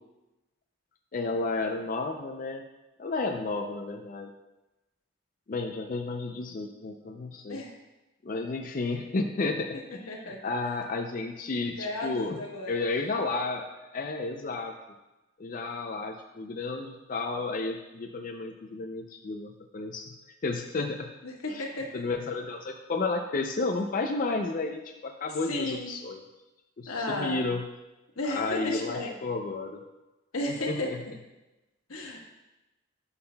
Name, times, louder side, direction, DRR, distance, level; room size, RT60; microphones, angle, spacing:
voice 1, 1.1-2.6 3.0-4.3 5.5-7.6 8.2-12.4 12.7-13.7 13.9-14.7 15.4-20.0 20.4-21.1 21.5-21.7 21.9-26.2 26.8-27.6 28.2-29.8 30.5-31.0, left 3 dB, 40° left, 3 dB, 0.4 m, -32 dB
voice 2, 10.1-10.4 11.8-12.8 21.2-21.9 25.5-25.9 26.9-27.4 28.2-29.1 30.3-30.9 31.9-32.2, left 1 dB, 90° left, 0 dB, 1.3 m, -33 dB
11.5 x 5.6 x 2.2 m, 1.0 s
head